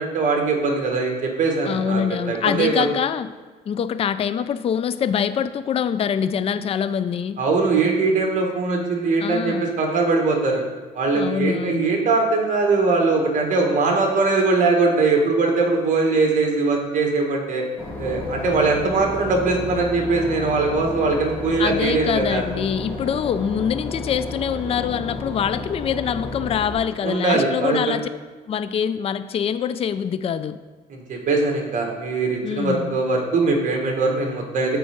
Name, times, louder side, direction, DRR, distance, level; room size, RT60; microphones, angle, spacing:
voice 1, 0.0-2.8 7.4-10.6 10.9-17.6 18.0-22.4 27.0-27.8 30.9-34.8, right 3 dB, 50° right, 2 dB, 1.6 m, -21 dB
voice 2, 1.7-3.3 3.7-7.4 9.2-9.7 11.1-12.0 21.6-28.1 28.5-30.6 32.4-33.0, left 8 dB, 35° left, 12 dB, 0.4 m, -24 dB
Boat Water vehicle / Engine, 17.8-26.7, left 2 dB, 15° left, 2.3 m, -32 dB
7.8 x 4.3 x 5.1 m, 1.3 s
cardioid pair, 110°, 17 cm